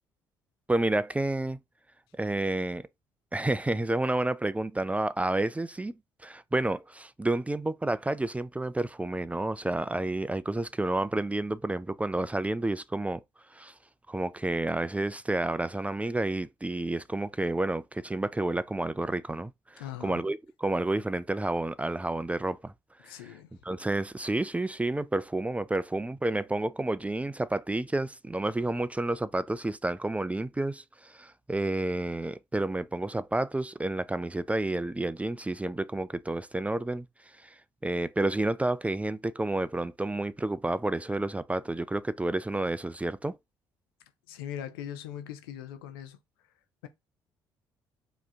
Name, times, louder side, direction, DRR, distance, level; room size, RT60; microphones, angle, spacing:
voice 1, 0.7-1.6 2.2-2.9 3.3-13.2 13.5-13.7 14.1-22.7 23.0-23.4 23.6-37.1 37.4-37.6 37.8-43.3, right 2 dB, 10° right, 0.4 m, -30 dB
voice 2, 19.8-20.2 23.0-23.5 44.3-46.2 46.8-46.9, left 10 dB, 80° left, 0.7 m, -40 dB
4.8 x 3.0 x 3.6 m
hypercardioid pair, 50°, 12 cm